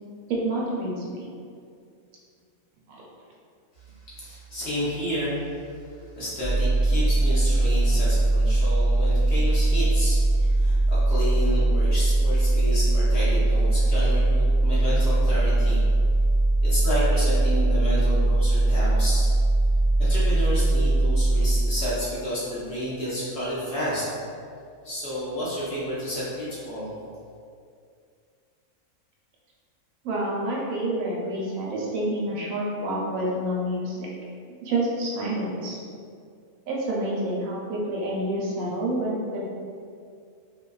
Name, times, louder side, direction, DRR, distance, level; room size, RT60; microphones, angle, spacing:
voice 1, 0.3-1.3 2.9-3.0 30.0-34.1 34.6-35.8 36.7-39.4, right 1 dB, 75° right, -4 dB, 1.0 m, -28 dB
voice 2, 4.1-5.4 6.2-15.8 16.6-19.3 20.0-24.1 24.8-26.9, equal, 55° left, -10 dB, 0.8 m, -31 dB
sound 1, 6.4-22.2, right 2 dB, 55° right, 0.6 m, -21 dB
2.7 x 2.2 x 2.2 m, 2.3 s
omnidirectional pair, 1.4 m